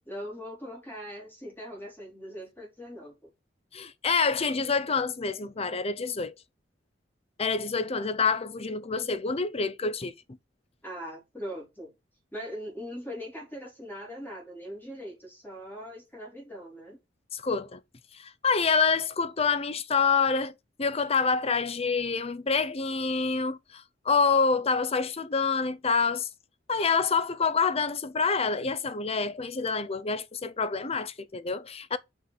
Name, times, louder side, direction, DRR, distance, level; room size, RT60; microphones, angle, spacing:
voice 1, 0.0-3.3 10.8-11.9 12.3-17.0, equal, 10° left, 3.6 m, -41 dB
voice 2, 3.7-6.3 7.4-10.2 17.3-17.8 18.1-26.3 26.7-32.0, left 5 dB, 35° left, 0.6 m, -27 dB
5.7 x 5.6 x 4.0 m
head